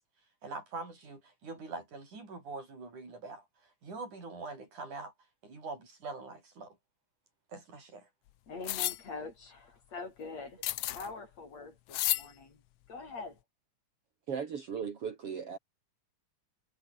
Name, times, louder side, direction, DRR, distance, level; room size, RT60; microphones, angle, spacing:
voice 1, 0.4-3.5 3.8-5.1 5.4-6.8 7.5-8.1, right 3 dB, 75° right, 9.1 m, -43 dB
voice 2, 8.5-10.6 10.9-12.6 12.9-13.4, left 4 dB, 55° left, 6.6 m, -44 dB
sound 1, 8.6-9.0 10.6-11.1 11.9-12.3, left 15 dB, 75° left, 1.4 m, -31 dB
voice 3, 14.3-15.6, right 7 dB, 50° right, 3.0 m, -37 dB
omnidirectional pair, 3.5 m